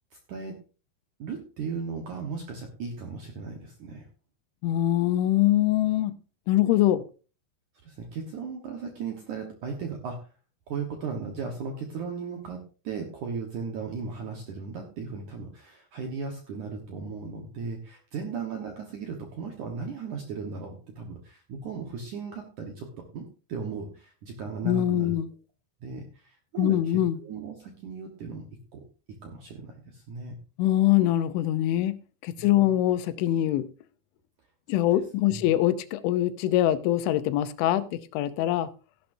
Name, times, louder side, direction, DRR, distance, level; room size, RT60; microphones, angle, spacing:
voice 1, 1.2-4.1 7.8-10.3 10.7-22.9 23.1-25.2 25.8-28.4 28.7-28.8 29.1-30.4 32.4-32.7 35.3-35.5, right 5 dB, 65° right, 2 dB, 2.0 m, -36 dB
voice 2, 4.6-6.2 6.5-7.0 24.6-25.3 26.6-27.2 30.6-33.7 34.7-38.7, left 13 dB, 85° left, 13 dB, 3.2 m, -23 dB
14.5 x 11.5 x 2.7 m, 0.36 s
omnidirectional pair, 5.4 m